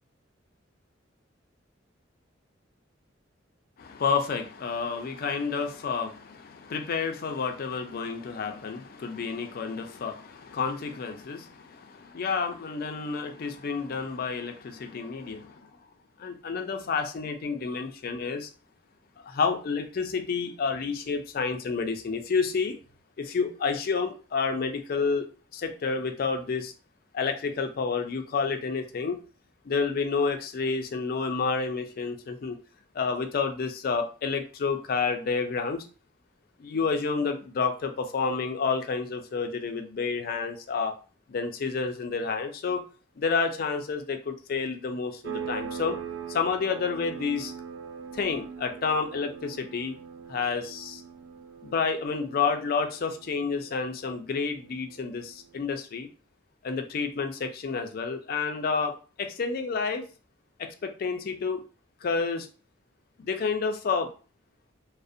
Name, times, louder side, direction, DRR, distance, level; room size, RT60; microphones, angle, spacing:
voice 1, 3.8-15.7 16.2-18.5 19.2-22.8 23.2-26.7 27.1-29.2 29.6-32.6 32.9-35.8 36.6-40.9 41.3-42.8 43.2-46.0 46.3-47.5 48.1-49.9 50.3-51.0 51.6-56.1 56.6-60.0 60.6-61.6 62.0-62.5 63.2-64.1, left 5 dB, 50° left, 6 dB, 0.4 m, -29 dB
sound 1, 45.2-55.6, right 7 dB, 65° right, 0.3 m, -41 dB
2.4 x 2.0 x 2.6 m, 0.36 s
head